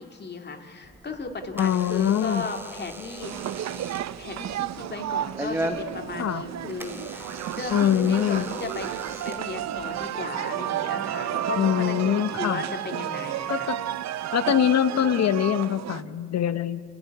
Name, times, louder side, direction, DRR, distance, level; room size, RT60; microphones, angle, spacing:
voice 1, 0.0-3.3 4.2-9.0 9.2-13.7, left 3 dB, 35° left, 4 dB, 2.4 m, -36 dB
Door / Alarm, 0.8-10.1, right 1 dB, 5° right, 1.2 m, -38 dB
voice 2, 1.6-2.5 6.2-6.4 7.7-8.4 11.6-12.6 13.5-13.8 14.3-16.8, left 10 dB, 60° left, 14 dB, 0.9 m, -23 dB
sound 1, 3.2-16.0, right 12 dB, 60° right, 0.6 m, -32 dB
29.0 x 11.5 x 9.7 m, 2.2 s
cardioid pair, 90°, 30 cm